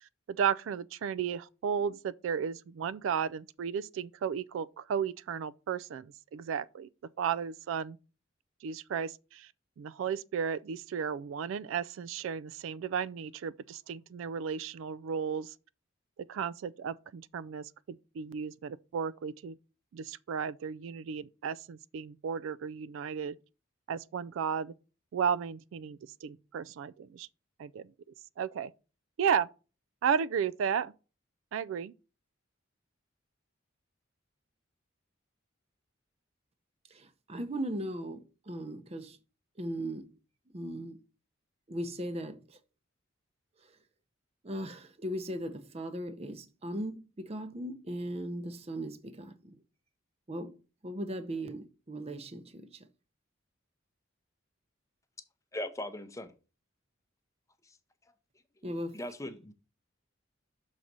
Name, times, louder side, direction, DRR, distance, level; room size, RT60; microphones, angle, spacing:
voice 1, 0.0-6.9 7.2-8.0 8.6-9.5 9.8-15.5 16.3-17.7 18.2-19.6 19.9-23.4 23.9-24.7 25.1-27.3 27.6-27.9 28.4-28.7 29.2-29.5 30.0-30.9 31.5-31.9, right 7 dB, 75° right, 0.3 m, -34 dB
voice 2, 36.9-39.2 39.6-40.2 40.5-41.0 41.7-42.6 43.6-43.8 44.4-49.6 50.3-50.5 50.8-52.9 58.6-59.0, right 1 dB, 30° right, 0.6 m, -38 dB
voice 3, 55.5-56.3 57.6-57.8 58.9-59.5, left 1 dB, 15° left, 0.6 m, -39 dB
6.3 x 4.0 x 5.9 m
head